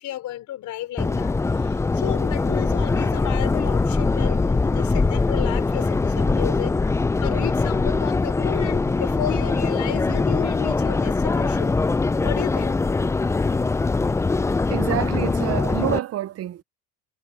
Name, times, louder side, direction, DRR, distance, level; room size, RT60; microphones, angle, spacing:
voice 1, 0.0-6.8 7.2-11.8 12.2-12.8, left 13 dB, 60° left, 3.4 m, -32 dB
Subway metro underground, 1.0-16.0, left 3 dB, 10° left, 0.4 m, -22 dB
voice 2, 14.7-16.6, right 13 dB, 45° right, 0.8 m, -27 dB
supercardioid pair, 105°, 33 cm